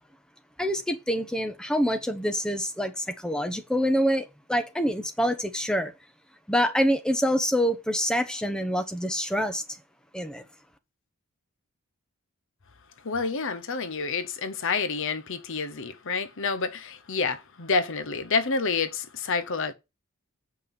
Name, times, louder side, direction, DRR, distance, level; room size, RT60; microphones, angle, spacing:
voice 1, 0.6-5.9 6.5-9.6 10.1-10.4, equal, 5° left, 1.0 m, -26 dB
voice 2, 13.0-19.7, left 4 dB, 60° left, 0.8 m, -28 dB
7.7 x 5.6 x 5.4 m
head